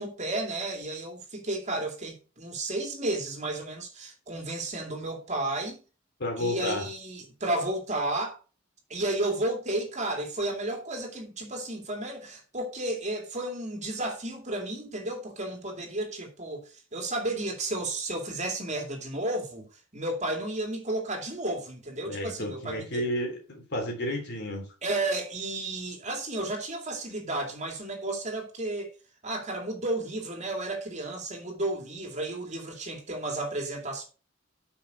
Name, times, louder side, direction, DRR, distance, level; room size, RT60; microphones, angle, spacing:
voice 1, 0.0-5.8 6.4-8.4 8.9-19.7 19.9-23.0 24.8-28.9 29.2-34.0, right 2 dB, 35° right, 2.4 m, -32 dB
voice 2, 6.2-6.8 22.0-24.7, left 1 dB, 55° left, 3.3 m, -31 dB
8.6 x 5.8 x 5.3 m
head